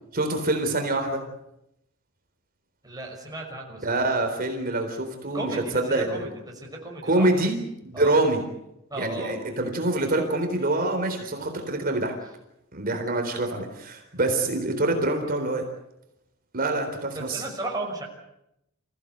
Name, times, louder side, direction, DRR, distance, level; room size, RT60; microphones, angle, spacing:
voice 1, 0.1-1.2 3.8-5.5 5.7-6.2 7.1-7.6 7.8-8.4 9.0-12.2 12.7-15.6 16.5-17.4, right 2 dB, 45° right, 4 dB, 3.9 m, -25 dB
voice 2, 2.8-3.9 4.1-4.4 5.3-7.3 7.9-8.2 8.9-9.4 17.1-18.0, right 2 dB, 20° right, -1 dB, 5.9 m, -35 dB
28.0 x 16.5 x 8.1 m, 0.83 s
head